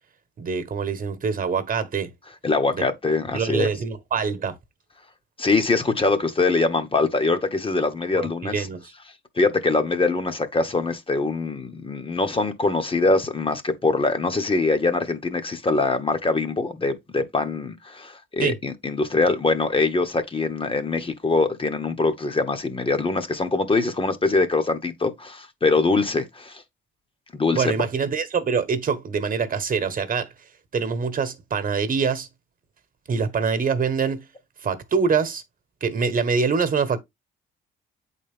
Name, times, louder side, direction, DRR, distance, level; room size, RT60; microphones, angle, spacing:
voice 1, 0.4-2.1 2.7-2.8 3.3-4.5 8.1-8.8 18.4-18.6 27.5-30.3 30.7-32.3 33.1-34.2 34.6-35.4 35.8-37.0, right 5 dB, 45° right, 1.3 m, -24 dB
voice 2, 2.4-3.7 5.4-8.7 9.3-26.6 27.3-27.7, left 3 dB, 25° left, 1.2 m, -23 dB
8.3 x 4.2 x 3.6 m
cardioid pair, 90°, 20 cm